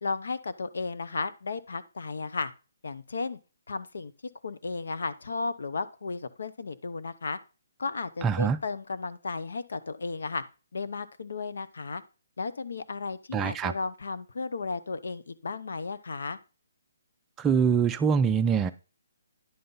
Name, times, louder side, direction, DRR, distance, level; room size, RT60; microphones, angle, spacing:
voice 1, 0.0-2.5 2.8-3.4 3.7-4.1 4.4-7.4 7.8-10.4 10.7-12.0 12.4-16.4, left 4 dB, 80° left, 0.8 m, -34 dB
voice 2, 8.2-8.6 13.3-13.7 17.4-18.7, right 6 dB, 10° right, 0.4 m, -24 dB
10.0 x 5.5 x 3.9 m
hypercardioid pair, 170°, 0 cm